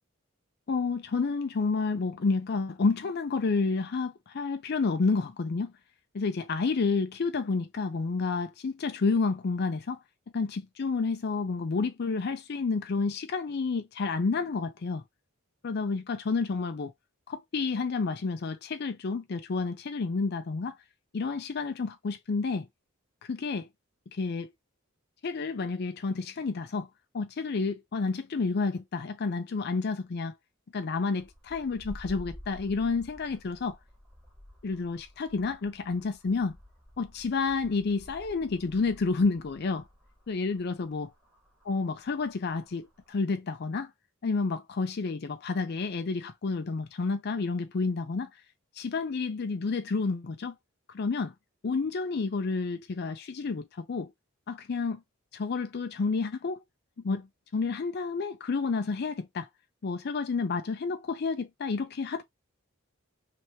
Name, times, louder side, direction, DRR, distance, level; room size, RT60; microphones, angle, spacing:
voice 1, 0.7-5.7 6.1-10.0 10.3-15.0 15.6-16.9 17.3-20.7 21.1-22.7 23.2-23.7 24.1-24.5 25.2-26.9 27.1-30.3 30.7-33.8 34.6-36.6 37.0-39.8 40.3-41.1 41.6-43.9 44.2-48.3 48.8-50.5 50.9-51.3 51.6-54.1 54.5-55.0 55.3-56.6 57.0-57.3 57.5-59.5 59.8-62.2, left 4 dB, 50° left, 0.4 m, -30 dB
sound 1, 31.2-43.1, left 1 dB, 5° right, 1.4 m, -51 dB
4.3 x 3.3 x 2.7 m
head